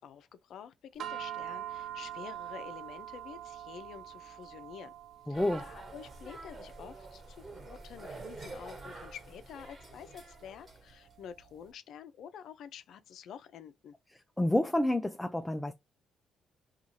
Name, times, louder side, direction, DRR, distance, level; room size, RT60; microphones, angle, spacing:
voice 1, 0.0-4.9 5.3-13.9, left 8 dB, 75° left, 0.5 m, -49 dB
sound 1, 1.0-11.5, right 11 dB, 65° right, 0.4 m, -46 dB
voice 2, 5.3-5.6 14.4-15.7, left 1 dB, 10° left, 0.3 m, -29 dB
sound 2, 5.3-11.1, right 2 dB, 30° right, 1.4 m, -47 dB
2.6 x 2.4 x 2.9 m
cardioid pair, 90°, 0 cm